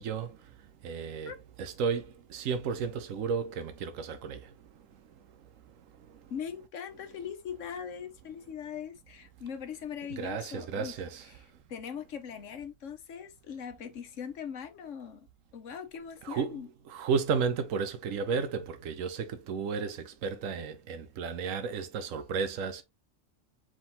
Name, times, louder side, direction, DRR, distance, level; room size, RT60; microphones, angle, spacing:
voice 1, 0.0-1.3 1.6-6.3 10.2-11.6 16.2-16.6 16.9-22.8, right 5 dB, 90° right, 1.1 m, -34 dB
voice 2, 6.3-11.0 11.3-11.4 11.7-15.3 15.5-16.7, left 7 dB, 75° left, 1.2 m, -40 dB
5.0 x 3.7 x 2.7 m
omnidirectional pair, 1.3 m